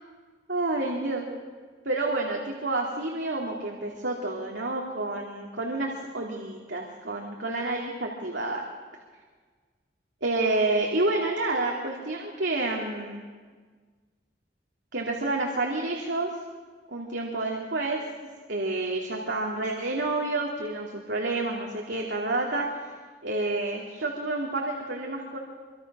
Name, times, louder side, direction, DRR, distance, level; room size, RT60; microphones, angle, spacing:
voice 1, 0.5-1.2 1.8-8.6 10.2-13.2 14.9-16.3 16.9-18.0 18.5-22.9 23.2-25.4, right 2 dB, 85° right, 0 dB, 2.8 m, -29 dB
25.5 x 25.0 x 6.2 m, 1.5 s
head